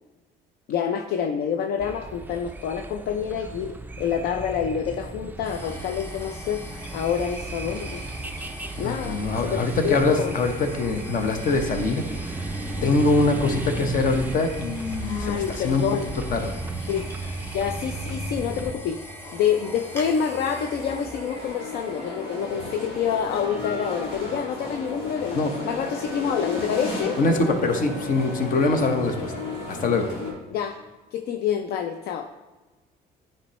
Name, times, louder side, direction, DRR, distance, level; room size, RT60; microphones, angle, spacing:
voice 1, 0.7-6.6 6.9-8.0 8.8-10.3 15.0-16.1 16.9-17.1 17.5-19.0 19.3-25.4 25.6-27.2 30.5-30.8 31.1-32.3, left 8 dB, 70° left, 6 dB, 0.5 m, -27 dB
sound 1, 1.8-18.8, right 2 dB, 10° right, 0.3 m, -34 dB
sound 2, 5.4-23.4, left 1 dB, 15° left, 1.5 m, -42 dB
voice 2, 8.8-12.5 12.8-15.8 16.3-16.6 25.3-25.5 27.2-29.3 29.7-30.1, left 3 dB, 55° left, 6 dB, 0.9 m, -23 dB
sound 3, 19.2-30.3, left 2 dB, 85° left, 1.6 m, -34 dB
9.8 x 4.4 x 3.1 m, 1.2 s
cardioid pair, 110°, 17 cm